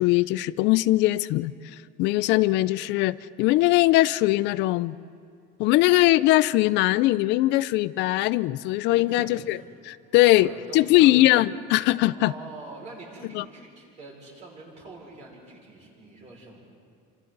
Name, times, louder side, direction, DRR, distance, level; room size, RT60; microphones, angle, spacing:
voice 1, 0.0-1.5 2.0-4.9 5.6-9.6 9.8-12.3 13.3-13.4, left 17 dB, 60° left, 17 dB, 0.5 m, -21 dB
voice 2, 8.9-9.6 10.2-11.4 12.0-16.6, right 2 dB, 35° right, -2 dB, 5.7 m, -44 dB
30.0 x 26.5 x 4.0 m, 2.3 s
cardioid pair, 170°, 21 cm